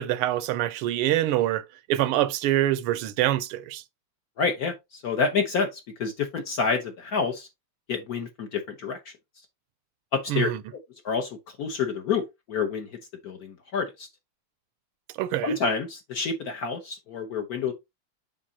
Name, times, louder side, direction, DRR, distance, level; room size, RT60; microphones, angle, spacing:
voice 1, 0.0-3.8 10.3-10.6 15.2-15.5, right 13 dB, 85° right, 1.6 m, -25 dB
voice 2, 4.4-7.5 7.9-9.1 10.1-10.5 11.0-12.2 12.5-12.9 13.2-14.1 15.4-17.7, left 5 dB, 55° left, 1.1 m, -28 dB
7.4 x 5.1 x 2.7 m
omnidirectional pair, 2.4 m